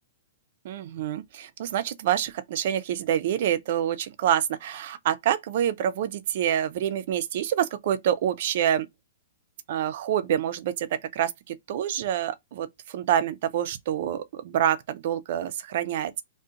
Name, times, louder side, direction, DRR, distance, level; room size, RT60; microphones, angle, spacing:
voice 1, 0.6-8.9 9.7-16.1, right 10 dB, 55° right, 0.4 m, -27 dB
2.5 x 2.1 x 3.8 m
hypercardioid pair, 135°, 0 cm